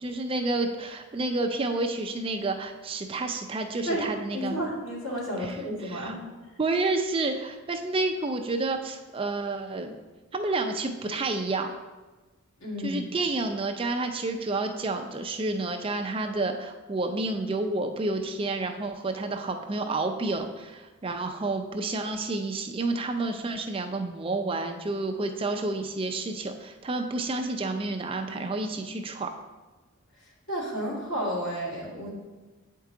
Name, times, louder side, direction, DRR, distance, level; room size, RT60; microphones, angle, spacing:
voice 1, 0.0-4.6 5.4-5.6 5.8-6.1 6.6-9.9 10.3-11.7 12.8-29.3, right 2 dB, 25° right, 5 dB, 0.4 m, -30 dB
voice 2, 3.9-6.3 12.6-13.1 30.2-32.1, equal, 85° left, -4 dB, 2.0 m, -32 dB
8.1 x 4.6 x 3.7 m, 1.2 s
head